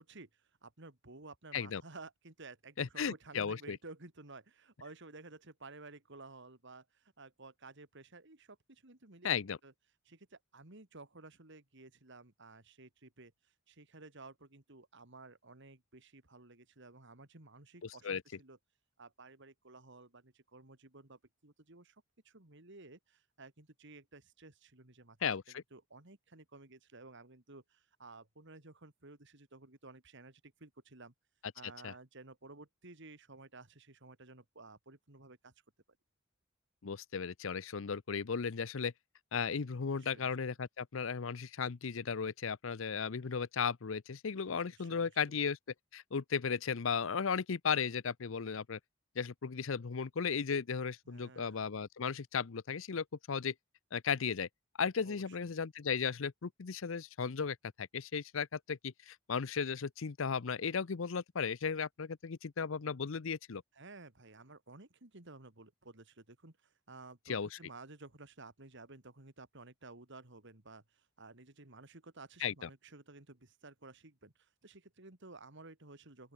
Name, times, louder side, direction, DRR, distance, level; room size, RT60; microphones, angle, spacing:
voice 1, 0.0-9.3 9.6-9.7 10.0-18.6 19.0-31.1 31.5-35.5 40.0-40.3 44.7-45.4 51.1-51.7 55.0-55.5 63.7-76.3, right 3 dB, 60° right, 2.9 m, -54 dB
voice 2, 2.8-3.8 9.2-9.6 17.8-18.2 25.2-25.6 31.8-31.9 36.8-38.9 39.3-45.6 45.9-48.8 49.2-53.5 53.9-54.5 54.8-63.6 67.3-67.6 72.4-72.7, left 6 dB, 70° left, 0.6 m, -35 dB
open air
head